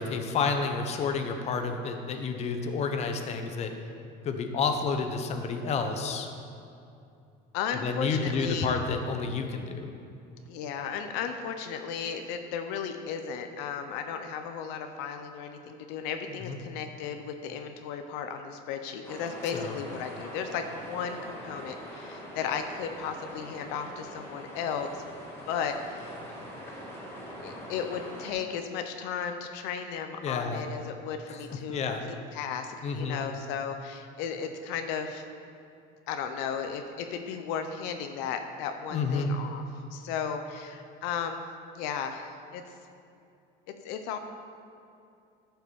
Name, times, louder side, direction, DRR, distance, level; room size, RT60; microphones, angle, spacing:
voice 1, 0.0-3.8 4.2-6.3 7.8-9.9 16.4-16.6 19.5-19.8 30.2-30.7 31.3-32.1 32.8-33.2 38.9-39.3, left 4 dB, 35° left, 5 dB, 1.0 m, -30 dB
voice 2, 7.5-8.7 10.5-25.0 25.5-26.2 27.4-31.8 32.3-35.2 36.1-39.6 39.9-41.4 41.7-42.6 43.7-44.2, left 7 dB, 80° left, 6 dB, 0.8 m, -35 dB
sound 1, 19.0-28.3, equal, 15° left, 2.1 m, -43 dB
12.0 x 5.9 x 7.0 m, 2.6 s
cardioid pair, 150°, 18 cm